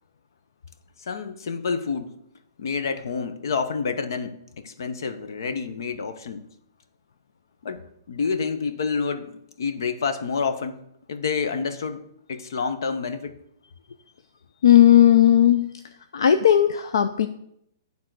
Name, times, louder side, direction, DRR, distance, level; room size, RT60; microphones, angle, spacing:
voice 1, 1.0-2.1 2.6-6.4 7.6-7.8 8.1-10.7 11.1-13.4, left 5 dB, 65° left, 10 dB, 0.9 m, -28 dB
voice 2, 14.6-15.7 16.1-17.3, left 11 dB, 80° left, 10 dB, 0.5 m, -16 dB
10.0 x 3.6 x 6.0 m, 0.74 s
hypercardioid pair, 180°, 2 cm